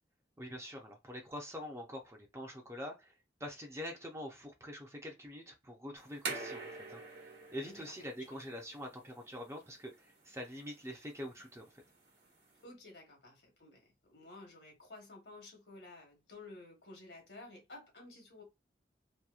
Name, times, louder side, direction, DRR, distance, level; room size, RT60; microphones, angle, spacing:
voice 1, 0.4-3.1 3.4-7.2 7.5-11.6, equal, 15° right, 0.5 m, -45 dB
sound 1, 6.0-12.6, right 3 dB, 75° right, 1.1 m, -47 dB
voice 2, 7.6-8.3 12.6-18.4, left 2 dB, 75° left, 1.1 m, -53 dB
2.9 x 2.2 x 2.3 m
head